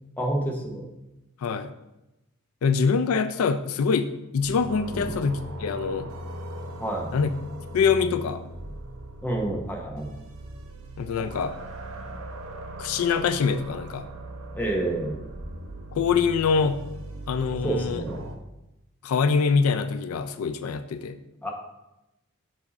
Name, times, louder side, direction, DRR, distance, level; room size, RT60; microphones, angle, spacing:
voice 1, 0.2-0.9 4.9-5.2 6.8-7.1 9.2-10.1 14.5-15.2 17.6-18.2 21.4-21.5, right 1 dB, 10° left, 0 dB, 0.8 m, -29 dB
voice 2, 1.4-1.7 2.6-6.1 7.1-7.3 7.7-8.4 11.0-11.5 12.8-14.1 15.9-16.8 17.3-18.0 19.0-21.2, left 5 dB, 75° left, 10 dB, 0.4 m, -24 dB
sound 1, 4.4-18.4, right 1 dB, 65° right, 0.7 m, -39 dB
5.4 x 4.7 x 4.2 m, 0.95 s
head